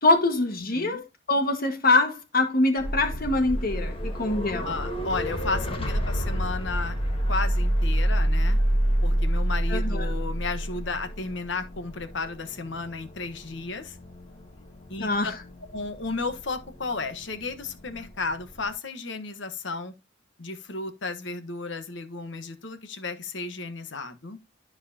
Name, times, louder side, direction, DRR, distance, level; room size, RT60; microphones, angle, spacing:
voice 1, 0.0-4.8 9.7-10.1 15.0-15.3, left 2 dB, 50° left, 1.7 m, -24 dB
sound 1, 2.8-18.7, equal, 30° left, 1.5 m, -28 dB
voice 2, 4.6-7.0 7.3-8.6 9.0-14.0 14.9-15.1 15.7-19.9 20.4-24.4, left 3 dB, 65° left, 1.2 m, -33 dB
12.5 x 4.8 x 2.8 m
head